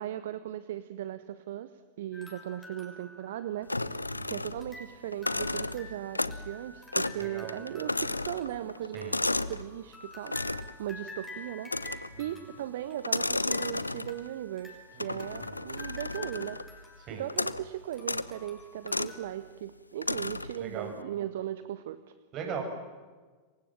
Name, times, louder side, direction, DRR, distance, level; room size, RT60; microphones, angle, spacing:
voice 1, 0.0-3.7 4.3-9.2 9.5-16.8 17.1-22.1, right 12 dB, 55° right, 13 dB, 1.1 m, -38 dB
sound 1, 2.1-4.1 4.6-19.3, left 2 dB, 5° left, 5.9 m, -50 dB
sound 2, 3.7-4.8 5.1-6.5 6.9-7.2 7.5-9.6 10.3-10.8 11.7-12.2 13.0-14.3 15.0-16.7 17.3-17.7 18.0-18.3 18.9-19.2 20.0-20.6, left 2 dB, 85° left, 0.8 m, -33 dB
voice 2, 7.1-7.5 8.9-9.2 12.1-12.2 15.0-15.1 17.1-17.2 20.6-20.9 22.3-22.6, right 7 dB, 35° right, 4 dB, 6.8 m, -38 dB
27.5 x 24.0 x 7.6 m, 1.4 s
figure-of-eight pair, 90°, 0 cm